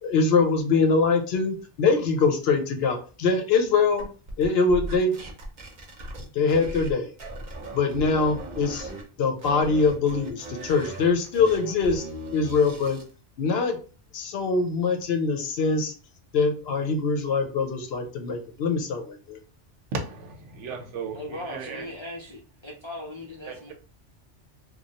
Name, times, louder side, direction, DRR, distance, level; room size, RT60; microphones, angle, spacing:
voice 1, 0.0-4.1 4.4-5.1 6.3-7.1 7.7-8.9 9.2-12.0 12.3-13.0 13.4-13.8 14.1-15.9 16.3-19.4, left 4 dB, 65° left, 0.8 m, -23 dB
sound 1, 4.0-6.9 7.2-9.0 9.4-13.1, right 2 dB, 45° right, 0.8 m, -38 dB
voice 2, 19.9-21.8 23.5-23.7, right 4 dB, 85° right, 1.0 m, -35 dB
voice 3, 21.1-23.7, left 1 dB, 45° left, 0.4 m, -38 dB
3.0 x 2.2 x 2.7 m
omnidirectional pair, 1.2 m